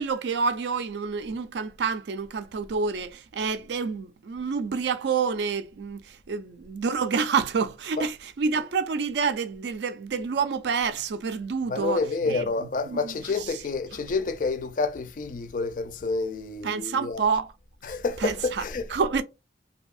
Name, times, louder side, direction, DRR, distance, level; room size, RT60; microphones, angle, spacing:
voice 1, 0.0-13.6 16.6-17.5 18.2-19.2, right 5 dB, 75° right, 0.4 m, -28 dB
voice 2, 11.7-17.3 17.8-19.0, left 3 dB, 45° left, 0.4 m, -29 dB
2.8 x 2.6 x 2.3 m
head